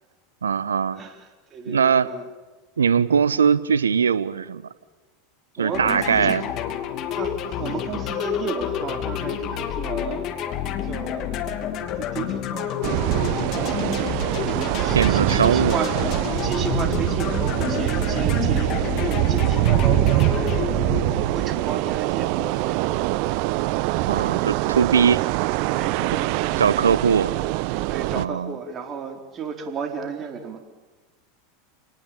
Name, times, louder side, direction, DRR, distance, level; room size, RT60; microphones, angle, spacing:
voice 1, 0.4-1.0 1.7-2.1 2.8-4.7 5.6-6.5 14.9-15.8 24.0-25.2 26.6-27.4 28.1-28.6, right 6 dB, 80° right, 17 dB, 1.0 m, -21 dB
voice 2, 0.9-2.3 5.6-6.4 7.1-10.3 10.8-11.6 12.0-13.0 13.8-14.1 14.7-16.0 16.4-23.5 25.7-26.8 27.9-30.6, right 6 dB, 30° right, 4 dB, 4.4 m, -33 dB
sound 1, 5.7-21.6, left 10 dB, 45° left, 2.6 m, -29 dB
sound 2, 12.8-28.2, right 17 dB, 55° right, 0.8 m, -23 dB
30.0 x 19.0 x 9.0 m, 1.3 s
figure-of-eight pair, 85°, 0 cm